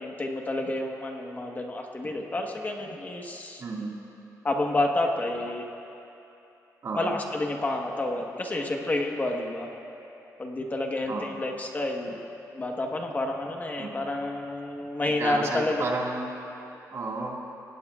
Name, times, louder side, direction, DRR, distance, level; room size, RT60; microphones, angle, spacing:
voice 1, 0.0-3.6 4.4-5.6 6.9-9.7 10.4-12.2 12.5-15.8, left 2 dB, 25° left, 1 dB, 1.3 m, -29 dB
voice 2, 3.6-4.0 6.8-7.2 11.1-11.2 13.8-13.9 15.2-16.3 16.9-17.4, right 3 dB, 50° right, -2 dB, 1.9 m, -31 dB
28.0 x 17.0 x 2.4 m, 2.9 s
wide cardioid pair, 135°, 6 cm